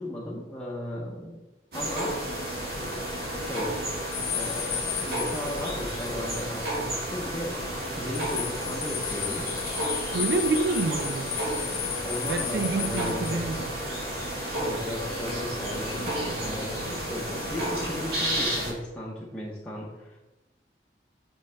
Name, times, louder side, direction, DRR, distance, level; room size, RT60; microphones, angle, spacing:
voice 1, 0.0-1.4 1.7-2.1 3.4-3.8 4.3-9.5 12.0-13.4 14.5-20.2, left 1 dB, 5° left, 0.8 m, -36 dB
sound 1, 1.7-18.7, right 1 dB, 60° right, 1.9 m, -32 dB
sound 2, 4.1-6.5 6.8-6.9 7.9-13.6, left 9 dB, 60° left, 0.7 m, -34 dB
voice 2, 10.1-11.4 12.3-13.7, right 3 dB, 80° right, 0.4 m, -27 dB
5.3 x 5.3 x 3.4 m
head